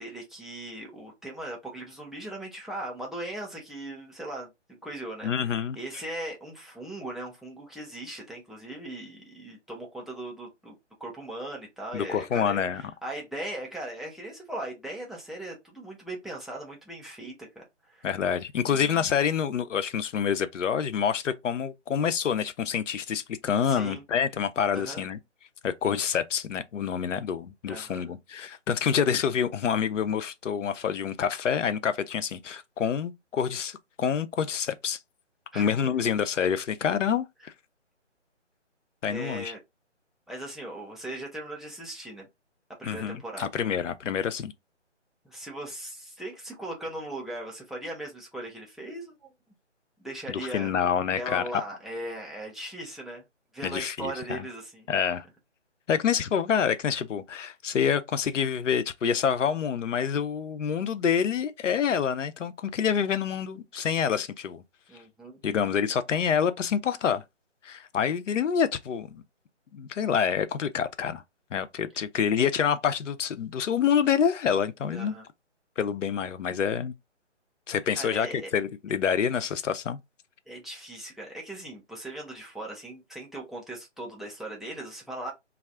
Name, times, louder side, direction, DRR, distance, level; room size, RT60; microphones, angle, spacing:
voice 1, 0.0-4.5 4.8-10.7 11.0-18.1 18.6-19.1 23.6-24.0 24.7-25.1 27.6-28.1 35.5-35.7 39.1-39.6 40.3-42.3 42.8-43.5 45.2-49.3 50.0-50.7 51.1-53.2 53.5-54.9 64.9-65.4 74.9-75.2 77.9-78.5 80.5-85.3, right 1 dB, ahead, 0.3 m, -39 dB
voice 2, 5.2-5.8 11.9-12.8 18.0-25.2 25.6-35.0 35.5-37.5 39.0-39.5 42.8-44.5 50.3-51.6 53.6-54.4 54.9-55.2 55.9-64.6 65.4-67.2 67.6-69.2 69.7-71.2 71.5-75.1 75.8-76.9 77.7-78.3 78.5-80.0, left 7 dB, 85° left, 0.5 m, -27 dB
2.3 x 2.0 x 3.3 m
hypercardioid pair, 165°, 36 cm